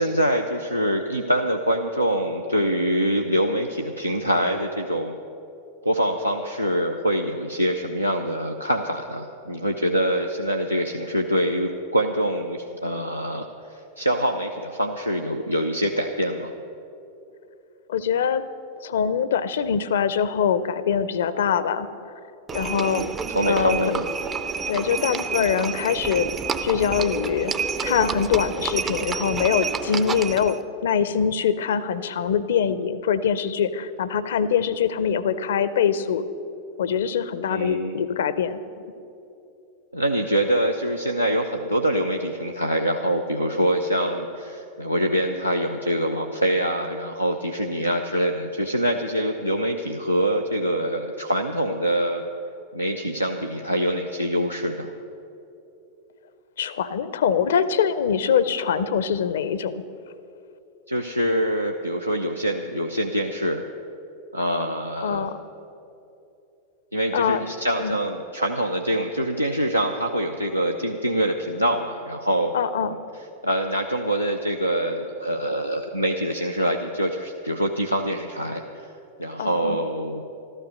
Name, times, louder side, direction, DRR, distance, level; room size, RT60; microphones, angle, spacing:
voice 1, 0.0-5.2 5.8-16.5 22.8-24.1 37.5-37.9 39.9-52.2 52.7-54.9 60.9-63.6 64.3-65.3 66.9-72.6 72.9-78.9 79.2-80.2, right 1 dB, 90° right, 2 dB, 0.6 m, -25 dB
voice 2, 17.9-18.4 18.8-21.9 22.5-23.1 23.5-23.8 24.7-26.3 26.6-27.5 27.8-36.2 36.8-38.6 56.6-59.7 65.0-65.4 67.1-67.4 67.8-68.0 72.5-73.0 79.4-79.8, left 7 dB, 60° left, 15 dB, 0.6 m, -23 dB
Livestock farm animals working animals, 22.5-30.6, right 5 dB, 25° right, 0.5 m, -29 dB
13.5 x 12.5 x 6.4 m, 2.8 s
figure-of-eight pair, 90°, 0 cm